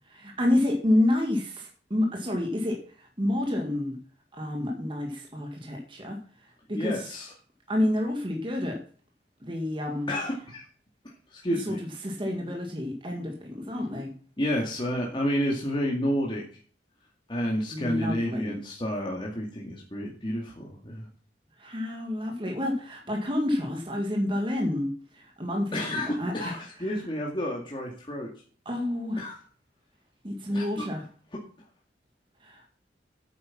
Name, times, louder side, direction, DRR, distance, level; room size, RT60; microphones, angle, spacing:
voice 1, 0.1-4.0 4.3-6.2 6.7-7.1 7.7-8.8 9.4-10.1 11.7-11.8 12.0-14.1 17.7-18.6 21.6-26.5 26.8-26.9 28.7-29.2 30.2-31.0 32.4-32.7, left 1 dB, 30° right, 1 dB, 1.8 m, -29 dB
voice 2, 6.7-7.3 10.1-10.6 11.3-11.8 14.4-16.4 17.3-21.1 25.7-28.3 29.2-29.3 30.5-30.9, equal, 30° left, -2 dB, 2.1 m, -30 dB
9.4 x 8.3 x 5.9 m, 0.43 s
head